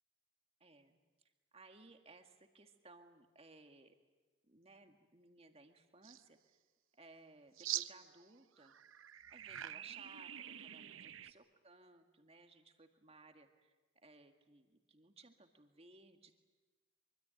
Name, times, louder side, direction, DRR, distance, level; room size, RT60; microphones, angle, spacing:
voice 1, 0.6-1.0 1.5-4.0 4.5-6.4 7.0-8.8 9.3-13.8 14.0-16.4, right 3 dB, 30° right, 6 dB, 1.9 m, -61 dB
sound 1, 6.0-6.2 7.6-8.3 8.6-11.3, right 12 dB, 75° right, 0.7 m, -45 dB
24.5 x 24.5 x 9.1 m, 1.2 s
head